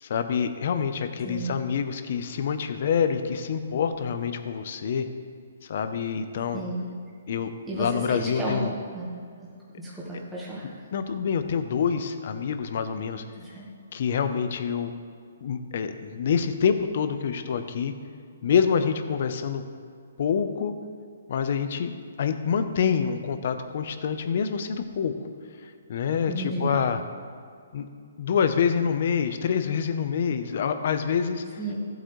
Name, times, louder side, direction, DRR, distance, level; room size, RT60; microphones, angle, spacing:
voice 1, 0.0-5.0 5.6-6.6 7.3-8.7 10.9-13.2 13.9-14.9 15.4-17.9 18.4-19.6 20.2-20.7 21.3-21.9 22.2-25.1 25.6-27.0 27.7-27.8 28.2-31.4, left 7 dB, 45° left, 9 dB, 0.7 m, -26 dB
voice 2, 1.2-1.5 6.5-6.9 7.7-8.6 8.9-9.1 9.8-10.7 13.4-13.6 26.3-26.8 31.6-31.7, right 1 dB, 5° right, -8 dB, 1.4 m, -32 dB
15.0 x 8.0 x 3.2 m, 2.2 s
hypercardioid pair, 170°, 0 cm